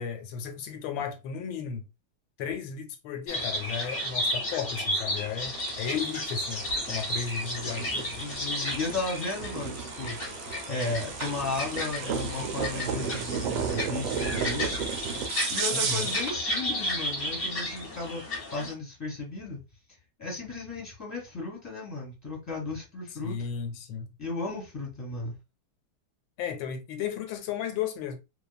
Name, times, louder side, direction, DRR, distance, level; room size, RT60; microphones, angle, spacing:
voice 1, 0.0-1.9 2.4-8.3 15.7-16.1 23.2-24.1 26.4-28.2, left 7 dB, 85° left, 1.3 m, -34 dB
sound 1, 3.3-18.7, left 1 dB, 40° left, 0.8 m, -33 dB
sound 2, 5.4-16.4, right 6 dB, 75° right, 1.1 m, -34 dB
voice 2, 8.2-10.2 10.7-14.9 15.5-18.2 18.5-19.6 20.2-23.4 24.2-25.4, left 3 dB, 10° left, 0.9 m, -34 dB
3.0 x 2.2 x 2.2 m
omnidirectional pair, 2.1 m